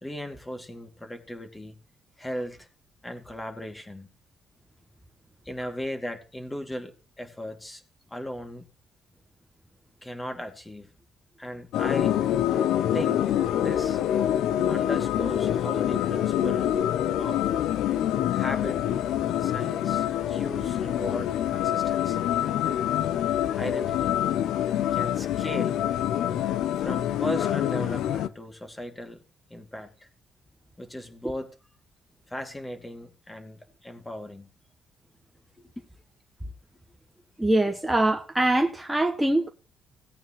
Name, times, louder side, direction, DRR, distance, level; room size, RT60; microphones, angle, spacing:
voice 1, 0.0-1.8 2.2-2.7 3.0-4.1 5.4-7.8 8.1-8.7 10.0-10.9 11.4-12.2 12.9-13.2 13.5-14.0 14.7-16.7 17.2-17.5 18.3-18.8 19.4-22.8 23.6-24.2 24.9-25.8 26.8-29.2 29.5-30.1 30.8-31.5 32.3-34.5 35.8-35.9, equal, 15° left, 2.6 m, -37 dB
sound 1, 11.7-28.3, left 11 dB, 85° left, 0.6 m, -26 dB
voice 2, 37.4-39.5, right 1 dB, 5° right, 1.2 m, -23 dB
17.5 x 9.1 x 3.2 m
cardioid pair, 90°, 0 cm